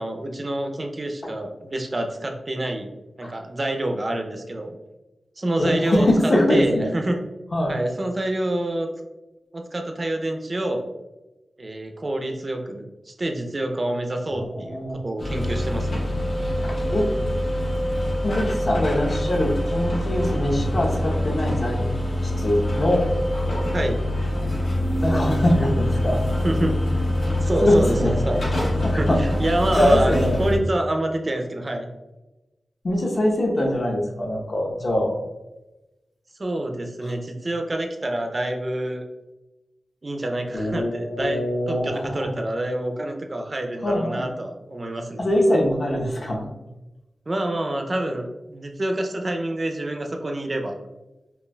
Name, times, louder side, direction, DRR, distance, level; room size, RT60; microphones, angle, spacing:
voice 1, 0.0-2.9 3.2-4.7 5.4-7.2 7.7-8.9 9.5-10.8 11.6-16.1 23.7-24.0 26.4-26.8 27.4-28.4 29.0-31.9 36.4-39.0 40.0-45.3 47.3-50.8, right 1 dB, 35° right, 3 dB, 0.4 m, -27 dB
voice 2, 5.6-6.9 7.5-7.7 14.3-15.0 16.6-17.1 18.2-21.9 22.2-23.1 25.0-26.2 27.6-28.1 28.8-29.2 29.8-30.4 32.8-35.1 37.0-37.1 40.5-42.3 43.8-44.3 45.2-46.5, left 1 dB, 50° left, -1 dB, 0.8 m, -23 dB
sound 1, 15.2-30.6, left 1 dB, 75° left, 1.4 m, -24 dB
5.4 x 2.3 x 2.2 m, 1.0 s
wide cardioid pair, 105°, 0 cm